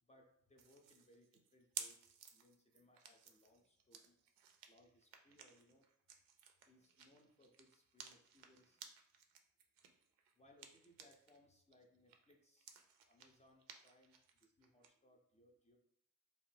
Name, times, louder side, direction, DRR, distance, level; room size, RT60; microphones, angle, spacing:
voice 1, 0.0-4.2 4.7-5.9 6.7-8.8 10.3-12.8 13.1-15.8, left 1 dB, 15° left, 1 dB, 0.4 m, -69 dB
sound 1, 0.6-11.4 11.7-14.9, right 7 dB, 80° right, 0.5 m, -56 dB
2.5 x 2.1 x 3.3 m, 0.69 s
hypercardioid pair, 55°, 49 cm